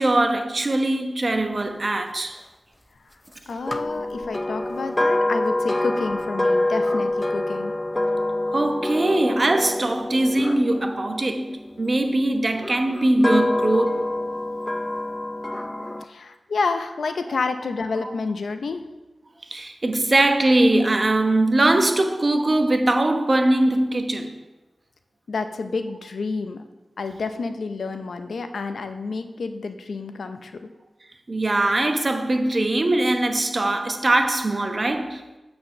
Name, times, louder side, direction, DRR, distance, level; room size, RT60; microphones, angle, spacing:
voice 1, 0.0-2.4 8.5-14.1 18.0-18.1 19.5-24.3 31.3-35.2, right 2 dB, 45° right, 0.9 m, -21 dB
voice 2, 3.5-7.7 16.0-18.8 25.3-26.6 27.0-30.7, left 4 dB, 85° left, 0.6 m, -29 dB
sound 1, 3.7-11.8 12.6-16.0, left 1 dB, 20° left, 0.4 m, -26 dB
7.9 x 4.3 x 6.5 m
cardioid pair, 50°, 0 cm